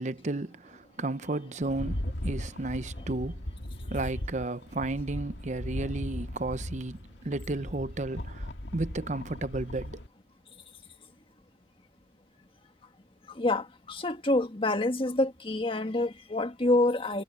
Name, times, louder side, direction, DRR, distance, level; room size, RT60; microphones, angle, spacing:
voice 1, 0.0-3.5 3.8-10.0, right 2 dB, 40° right, 0.8 m, -33 dB
Rattle, 1.6-10.1, left 1 dB, 90° left, 2.0 m, -37 dB
voice 2, 13.3-17.2, left 2 dB, 30° left, 1.7 m, -27 dB
head